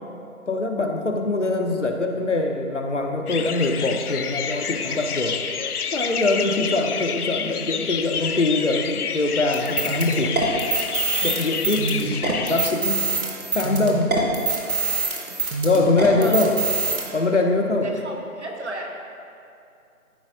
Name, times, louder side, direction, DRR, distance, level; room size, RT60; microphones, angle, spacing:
voice 1, 0.5-5.4 5.9-10.4 11.2-13.1 13.5-14.1 15.6-16.6 17.1-17.9, left 2 dB, 55° left, 3 dB, 0.8 m, -23 dB
sound 1, 3.3-12.7, left 7 dB, 80° left, 0.6 m, -29 dB
sound 2, 9.5-17.0, right 4 dB, 70° right, 1.5 m, -25 dB
voice 2, 17.8-18.9, right 2 dB, 50° right, 0 dB, 1.2 m, -32 dB
13.5 x 4.6 x 2.7 m, 2.5 s
figure-of-eight pair, 165°, 44 cm